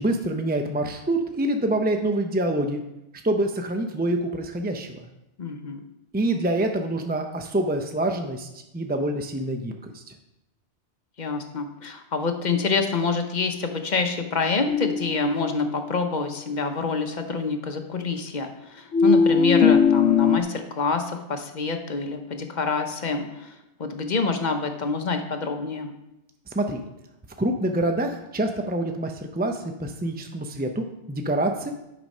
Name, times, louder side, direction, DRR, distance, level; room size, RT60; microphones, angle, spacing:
voice 1, 0.0-2.8 3.2-5.0 6.1-8.5 8.7-10.0 26.5-26.8 27.4-31.7, right 1 dB, 15° right, 4 dB, 0.3 m, -26 dB
voice 2, 5.4-5.8 11.2-23.5 23.8-25.9, left 4 dB, 45° left, 6 dB, 0.8 m, -27 dB
spectralprocessed lamp, 14.7-16.0 18.9-20.4, left 6 dB, 85° left, 1.0 m, -20 dB
9.0 x 5.1 x 5.4 m, 0.90 s
omnidirectional pair, 1.2 m